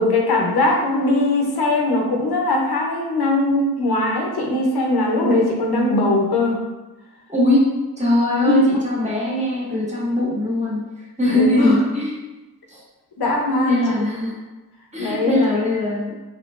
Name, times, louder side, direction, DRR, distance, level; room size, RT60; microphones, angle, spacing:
voice 1, 0.0-6.6 8.4-8.8 11.3-11.8 13.2-13.9 15.0-15.4, left 2 dB, 85° left, 0 dB, 0.7 m, -20 dB
voice 2, 7.3-7.7 8.0-12.2 12.7-12.8 13.6-14.4 14.9-16.1, left 1 dB, 20° right, -7 dB, 1.5 m, -21 dB
3.6 x 3.3 x 2.4 m, 1.1 s
wide cardioid pair, 60°, 37 cm